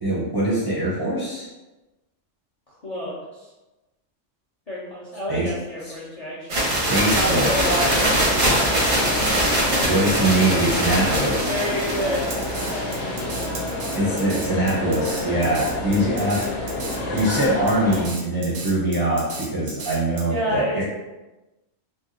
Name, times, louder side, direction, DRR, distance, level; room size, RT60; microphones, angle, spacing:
voice 1, 0.0-1.5 5.3-5.5 6.7-7.6 9.9-11.5 13.9-16.5 17.1-20.8, right 1 dB, 25° right, -7 dB, 0.5 m, -23 dB
voice 2, 2.7-3.5 4.7-6.7 7.1-9.0 11.2-13.4 15.8-16.1 20.3-20.8, equal, 45° left, -7 dB, 0.5 m, -30 dB
sound 1, 6.5-12.9, right 1 dB, 85° right, 1.3 m, -22 dB
sound 2, 7.3-18.1, left 1 dB, 70° left, 0.9 m, -28 dB
Drum kit, 12.3-20.2, right 4 dB, 65° right, 0.7 m, -35 dB
3.4 x 2.2 x 2.7 m, 1.1 s
omnidirectional pair, 1.3 m